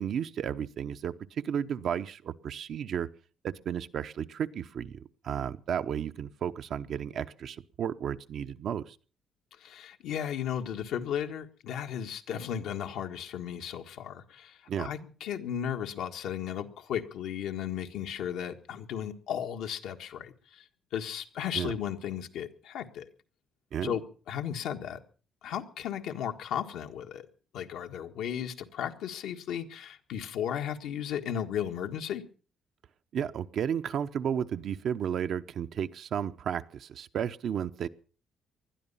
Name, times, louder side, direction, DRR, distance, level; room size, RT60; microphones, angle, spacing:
voice 1, 0.0-3.1 3.4-9.0 14.7-14.9 21.5-21.7 23.7-24.0 33.1-37.9, right 8 dB, 65° right, 10 dB, 0.9 m, -33 dB
voice 2, 9.6-23.1 23.8-25.0 25.4-27.3 27.5-32.2, left 9 dB, 85° left, 4 dB, 1.6 m, -35 dB
20.0 x 12.5 x 5.6 m, 0.39 s
cardioid pair, 90°, 0 cm